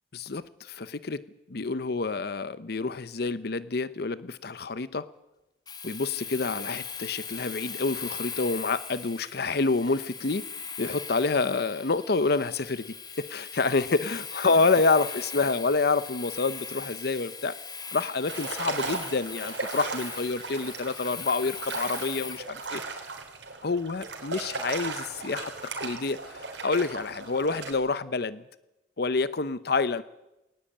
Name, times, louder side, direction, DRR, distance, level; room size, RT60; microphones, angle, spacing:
voice 1, 0.1-1.2 1.5-5.1 5.8-10.5 10.8-17.6 17.9-22.8 23.6-28.4 29.0-30.0, left 3 dB, 60° left, 16 dB, 0.8 m, -28 dB
Domestic sounds home sounds, 5.7-22.5, left 6 dB, 25° left, 1.9 m, -40 dB
sound 1, 18.3-27.7, right 4 dB, 80° right, 3.9 m, -37 dB
20.0 x 19.0 x 8.6 m, 0.96 s
head